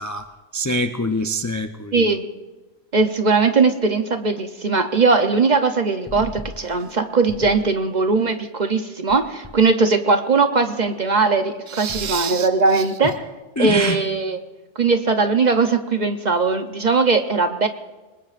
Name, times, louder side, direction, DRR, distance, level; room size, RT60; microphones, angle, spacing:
voice 1, 0.0-2.1 6.1-6.2 11.7-12.5 12.7-12.8 13.6-14.0, equal, 25° left, 5 dB, 0.3 m, -25 dB
voice 2, 1.9-2.3 2.9-13.3 13.6-14.4 14.8-17.7, right 4 dB, 40° right, 7 dB, 0.7 m, -19 dB
27.0 x 20.0 x 2.5 m, 1.2 s
omnidirectional pair, 1.3 m